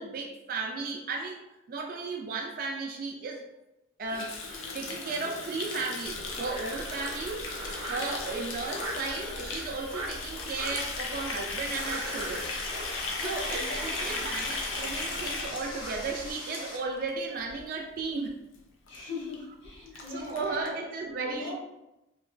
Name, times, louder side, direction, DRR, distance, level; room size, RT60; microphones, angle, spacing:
voice 1, 0.0-1.4 1.7-3.4 4.0-12.5 13.1-18.3 19.9-21.5, right 3 dB, 45° right, 1 dB, 0.3 m, -35 dB
Water tap faucet, 4.1-17.1 17.4-17.6 17.9-18.3 18.5-18.6 18.9-19.0 19.3-19.4 19.6-20.7, left 3 dB, 90° left, 0.5 m, -37 dB
Frog, 6.0-16.3, right 1 dB, 90° right, 0.6 m, -41 dB
sound 1, 11.6-16.8, left 1 dB, 25° left, 0.5 m, -42 dB
voice 2, 13.2-14.2 18.9-21.5, left 3 dB, 75° left, -4 dB, 1.0 m, -41 dB
3.0 x 2.2 x 2.5 m, 0.93 s
head